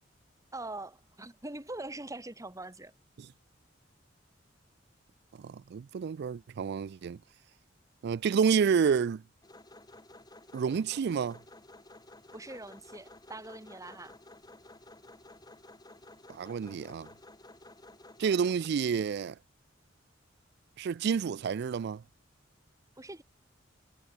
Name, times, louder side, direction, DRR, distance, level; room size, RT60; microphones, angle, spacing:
voice 1, 0.5-2.9 12.3-14.2 23.0-23.2, right 2 dB, 15° right, 2.1 m, -43 dB
voice 2, 5.3-7.2 8.0-9.2 10.5-11.4 16.3-17.1 18.2-19.4 20.8-22.0, right 6 dB, 55° right, 0.3 m, -29 dB
sound 1, 9.4-18.7, left 2 dB, 20° left, 6.1 m, -53 dB
head